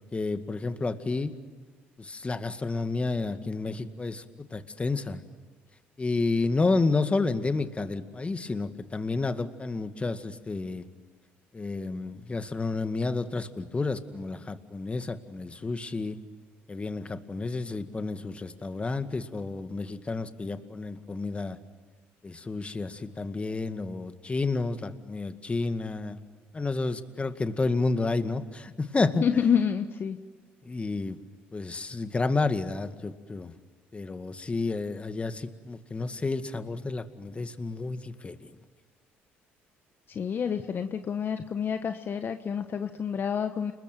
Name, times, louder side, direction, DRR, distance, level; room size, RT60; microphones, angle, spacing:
voice 1, 0.1-1.3 2.0-5.2 6.0-10.8 11.5-16.2 16.7-21.6 22.2-26.2 26.5-29.2 30.7-31.2 31.5-33.5 33.9-38.4, left 3 dB, 25° left, 9 dB, 2.1 m, -30 dB
voice 2, 29.2-30.2 40.1-43.7, left 7 dB, 45° left, 8 dB, 1.3 m, -28 dB
29.5 x 21.0 x 9.3 m, 1.5 s
supercardioid pair, 70°, 5 cm